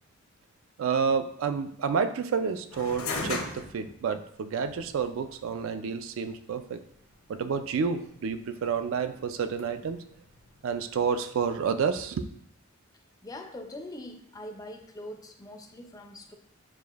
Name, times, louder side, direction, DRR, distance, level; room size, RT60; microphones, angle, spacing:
voice 1, 0.8-6.8 7.3-10.0 10.6-12.3, right 6 dB, 65° right, 10 dB, 0.3 m, -29 dB
sound 1, 2.7-11.9, left 3 dB, 80° left, 0.8 m, -41 dB
voice 2, 13.2-16.3, left 1 dB, 15° left, 4 dB, 0.4 m, -42 dB
6.6 x 2.5 x 2.4 m, 0.68 s
head